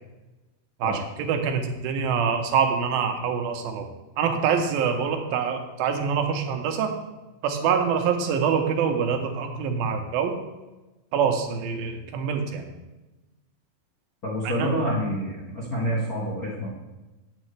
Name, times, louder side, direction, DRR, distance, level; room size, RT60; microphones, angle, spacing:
voice 1, 0.8-6.9 7.4-10.4 11.1-12.8 14.4-14.9, right 6 dB, 85° right, 5 dB, 2.6 m, -25 dB
voice 2, 14.2-16.7, equal, 55° left, -6 dB, 0.9 m, -28 dB
8.4 x 8.0 x 3.2 m, 1.1 s
omnidirectional pair, 4.1 m